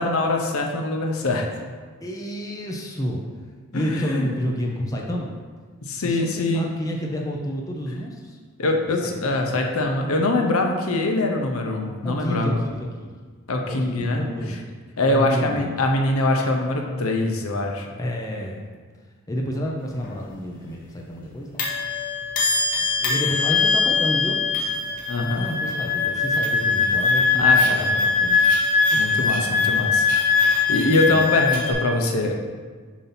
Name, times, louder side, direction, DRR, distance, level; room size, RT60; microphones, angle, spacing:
voice 1, 0.0-1.5 3.7-4.3 5.8-6.7 8.6-12.6 13.5-14.6 15.0-17.9 25.1-25.5 27.4-27.9 29.0-30.1 30.4-32.3, left 2 dB, 70° left, 2 dB, 0.8 m, -23 dB
voice 2, 2.0-3.2 3.7-5.3 6.0-8.4 9.4-9.5 12.0-13.2 13.7-14.6 15.1-15.7 18.0-18.6 19.3-22.1 23.0-24.4 24.8-25.0 25.3-28.6 28.9-29.9 31.1-31.3, equal, 15° left, -1 dB, 0.6 m, -30 dB
sound 1, 20.0-20.1 21.6-31.7, left 4 dB, 40° left, 1.0 m, -21 dB
7.1 x 2.8 x 5.8 m, 1.5 s
head